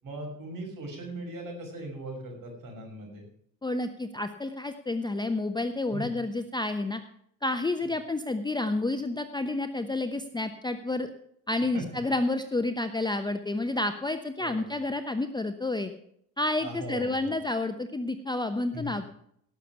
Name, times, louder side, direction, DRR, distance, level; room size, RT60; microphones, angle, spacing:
voice 1, 0.0-3.2 5.9-6.1 11.7-11.9 14.4-14.7 16.6-17.3 18.7-19.0, right 1 dB, 45° right, 2 dB, 5.7 m, -39 dB
voice 2, 3.6-7.0 7.4-11.1 11.5-15.9 16.4-19.0, left 2 dB, 10° left, 8 dB, 0.8 m, -30 dB
17.5 x 6.9 x 5.9 m, 0.69 s
figure-of-eight pair, 55°, 46 cm